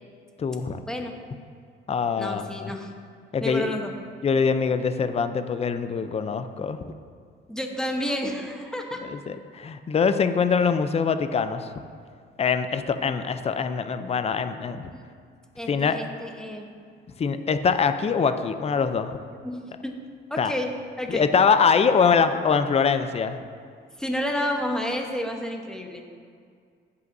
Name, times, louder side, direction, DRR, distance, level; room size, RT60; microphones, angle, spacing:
voice 1, 0.4-0.8 1.9-2.7 3.3-3.8 4.2-6.8 9.1-11.7 12.4-14.9 15.7-16.0 17.2-19.2 20.4-20.5 21.1-23.4, left 6 dB, 30° left, 10 dB, 0.5 m, -23 dB
voice 2, 2.2-2.9 3.4-3.9 7.5-9.0 14.9-15.0 15.6-16.7 19.4-19.9 20.3-20.7 21.0-21.2 24.0-26.0, left 1 dB, 5° left, 2 dB, 1.0 m, -30 dB
15.5 x 5.6 x 2.7 m, 2.2 s
cardioid pair, 90°, 20 cm